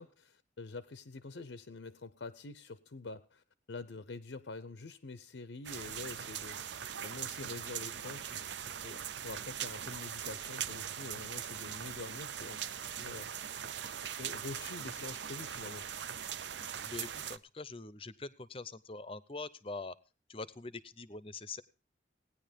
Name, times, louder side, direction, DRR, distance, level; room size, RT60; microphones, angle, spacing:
voice 1, 0.0-8.4 8.8-13.3 14.2-15.9, left 3 dB, 80° left, 14 dB, 0.7 m, -46 dB
sound 1, 5.6-17.4, right 9 dB, 70° right, 0.6 m, -41 dB
voice 2, 16.8-20.0 20.3-21.6, left 3 dB, 30° left, 17 dB, 0.6 m, -44 dB
17.5 x 9.9 x 5.1 m, 0.35 s
head